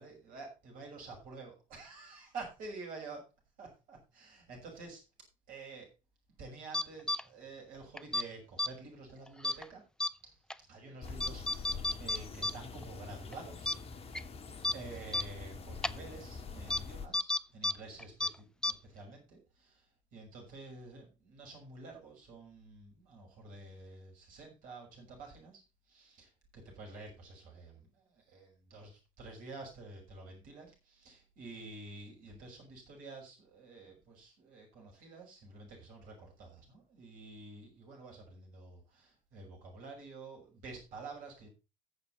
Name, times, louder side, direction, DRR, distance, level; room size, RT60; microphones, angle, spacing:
voice 1, 0.0-3.3 3.6-5.0 5.5-5.9 6.4-9.8 10.2-10.4 10.7-14.3 14.7-41.5, right 3 dB, 55° right, 0 dB, 6.2 m, -49 dB
sound 1, 6.7-7.2 8.0-8.2 8.6-8.7 9.4-9.6 10.0-10.1 10.5-10.6 11.2-12.5 12.8-12.9 13.3-13.4 13.7-13.8 14.1-14.2 14.6-14.7 15.1-15.2 15.8-15.9 16.7-16.8 17.1-17.7 18.0-18.3 18.6-18.7, left 2 dB, 5° left, 0.6 m, -31 dB
sound 2, 11.0-17.1, left 4 dB, 35° left, 1.7 m, -45 dB
15.5 x 7.0 x 4.4 m, 0.29 s
figure-of-eight pair, 60°, 17 cm